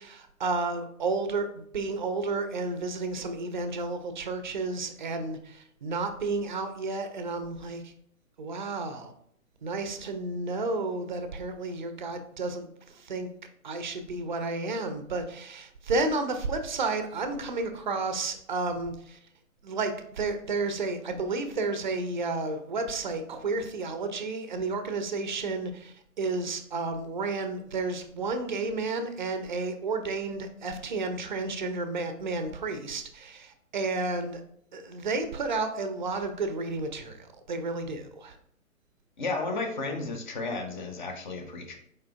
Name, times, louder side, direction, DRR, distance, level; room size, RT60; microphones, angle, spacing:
voice 1, 0.0-7.9 8.4-9.1 9.6-13.3 13.6-19.2 19.6-34.4 34.7-38.4, right 3 dB, 35° right, 8 dB, 0.5 m, -32 dB
voice 2, 39.2-41.8, left 3 dB, 35° left, 5 dB, 0.7 m, -33 dB
4.7 x 4.5 x 2.4 m, 0.69 s
figure-of-eight pair, 125°, 42 cm